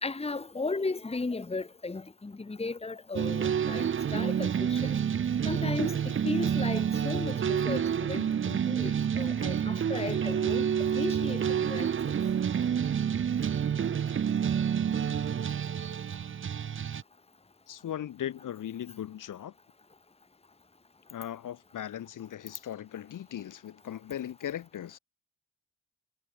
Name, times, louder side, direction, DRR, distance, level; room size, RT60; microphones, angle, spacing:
voice 1, 0.0-3.9 4.1-4.9 5.5-5.9 6.2-10.7 10.9-11.9, left 3 dB, 15° left, 1.8 m, -35 dB
sound 1, 3.1-17.0, right 8 dB, 35° right, 0.8 m, -28 dB
voice 2, 17.7-19.5 21.1-25.0, left 10 dB, 65° left, 2.2 m, -38 dB
supercardioid pair, 65°, 34 cm